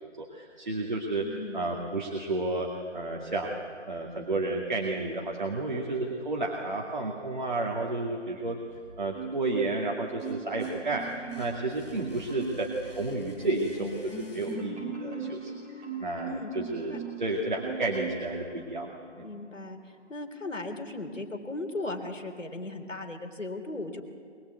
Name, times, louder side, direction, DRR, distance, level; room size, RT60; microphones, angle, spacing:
voice 1, 0.0-3.5 3.9-8.6 9.0-15.5 16.0-19.2, right 2 dB, 40° right, -1 dB, 2.3 m, -31 dB
voice 2, 1.2-1.6 16.3-16.5 16.9-17.0 17.3-17.5 19.2-19.8 20.1-24.0, left 2 dB, 80° left, 5 dB, 3.7 m, -37 dB
sound 1, 8.7-9.5 9.9-15.0, equal, 25° left, 6.2 m, -52 dB
Marimba xylophone, 9.1-9.9 10.2-11.6 12.0-12.7 13.1-17.2 17.6-18.3 18.7-18.9, right 5 dB, 10° right, 3.2 m, -39 dB
23.0 x 22.0 x 8.2 m, 2.3 s
figure-of-eight pair, 170°, 37 cm